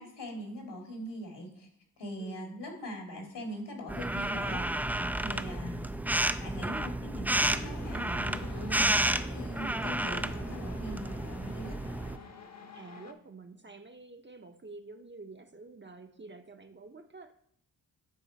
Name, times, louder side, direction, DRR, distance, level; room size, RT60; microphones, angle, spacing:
voice 1, 0.0-1.7 2.0-5.9 6.4-11.8, equal, 70° left, 2 dB, 2.3 m, -41 dB
voice 2, 2.2-2.6 12.7-17.3, right 3 dB, 25° right, 6 dB, 0.8 m, -49 dB
sound 1, 3.9-12.2, right 1 dB, 5° right, 0.4 m, -31 dB
sound 2, 7.5-13.1, left 4 dB, 40° left, 1.0 m, -48 dB
9.3 x 3.8 x 4.0 m, 0.67 s
supercardioid pair, 45°, 43 cm